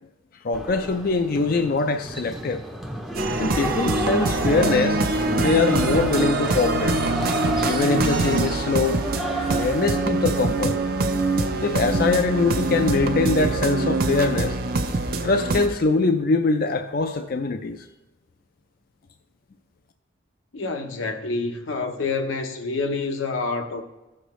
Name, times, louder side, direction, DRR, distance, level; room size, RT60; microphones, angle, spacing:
voice 1, 0.4-2.6 3.4-5.0 5.3-7.3 7.6-9.0 9.5-10.8 11.6-14.6 15.2-17.9, left 3 dB, 50° left, 0.4 m, -23 dB
sound 1, 0.5-10.1, right 1 dB, ahead, 0.6 m, -31 dB
sound 2, 3.1-15.7, right 2 dB, 50° right, 0.6 m, -24 dB
sound 3, 6.2-13.6, left 1 dB, 90° right, 1.3 m, -44 dB
voice 2, 20.5-23.8, left 3 dB, 85° left, 0.8 m, -27 dB
15.0 x 6.4 x 3.1 m
head